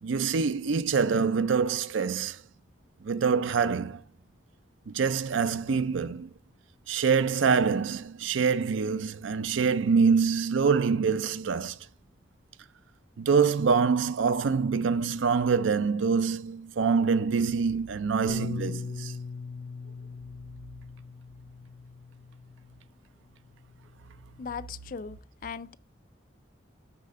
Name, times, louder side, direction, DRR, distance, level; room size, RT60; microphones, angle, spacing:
voice 1, 0.0-2.4 3.0-4.0 4.9-6.3 6.9-11.8 13.2-19.1, right 5 dB, 80° right, 0.5 m, -25 dB
Bass guitar, 18.3-22.8 23.6-24.5, left 4 dB, 90° left, 0.6 m, -40 dB
voice 2, 24.4-25.2 25.4-25.8, left 6 dB, 45° left, 0.4 m, -37 dB
12.0 x 4.2 x 3.6 m
head